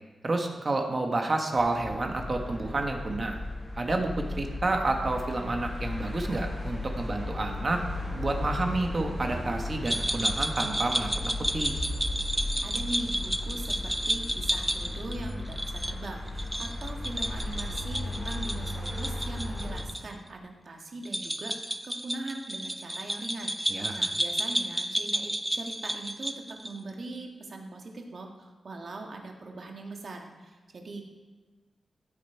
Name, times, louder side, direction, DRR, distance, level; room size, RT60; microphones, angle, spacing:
voice 1, 0.2-3.4 3.7-7.8 8.1-11.7 23.7-24.0, right 2 dB, 35° right, 3 dB, 1.4 m, -30 dB
sound 1, 1.6-19.8, left 2 dB, 15° left, 2.7 m, -35 dB
sound 2, 9.8-20.0 20.3-20.4 21.0-26.8, right 1 dB, 10° right, 0.6 m, -32 dB
voice 2, 12.6-26.3 26.6-31.0, right 2 dB, 50° right, 2 dB, 1.9 m, -41 dB
15.5 x 9.1 x 4.6 m, 1.3 s
wide cardioid pair, 160°, 0 cm